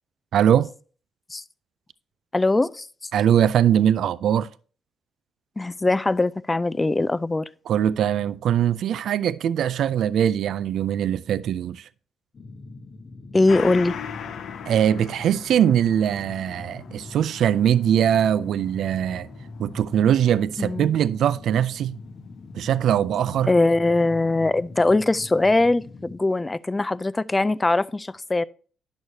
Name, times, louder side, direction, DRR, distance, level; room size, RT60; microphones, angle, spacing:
voice 1, 0.3-0.7 3.1-4.5 7.7-11.9 14.7-19.3 19.6-22.0 22.5-23.5, right 9 dB, 70° right, 0.3 m, -21 dB
voice 2, 2.3-2.9 5.6-7.5 13.3-14.0 20.6-20.9 23.4-28.4, left 2 dB, 20° left, 0.3 m, -21 dB
sound 1, 12.3-26.2, left 3 dB, 45° left, 1.0 m, -42 dB
Gong, 13.5-22.4 22.8-22.9, left 8 dB, 70° left, 0.6 m, -41 dB
10.5 x 6.3 x 2.8 m
cardioid pair, 90°, 0 cm